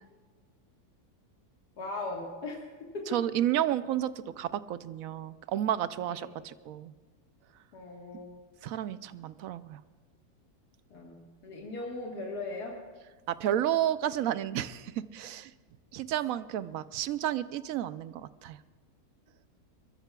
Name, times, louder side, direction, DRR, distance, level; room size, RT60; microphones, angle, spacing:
voice 1, 1.8-3.2 6.0-6.3 7.7-8.4 10.9-12.8, left 2 dB, 90° left, -2 dB, 2.1 m, -39 dB
voice 2, 3.1-4.1 4.4-6.9 8.6-9.8 13.3-15.5 15.9-18.6, right 11 dB, 70° right, 14 dB, 0.9 m, -31 dB
29.0 x 14.0 x 2.3 m, 1.4 s
omnidirectional pair, 1.6 m